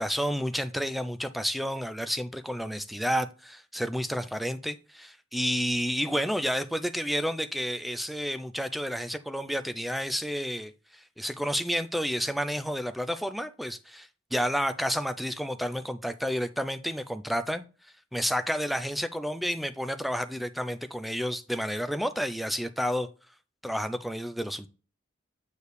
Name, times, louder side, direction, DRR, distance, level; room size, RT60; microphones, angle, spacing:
voice 1, 0.0-17.6 18.1-23.1 23.6-24.7, equal, ahead, 0.4 m, -30 dB
8.2 x 4.6 x 3.3 m
head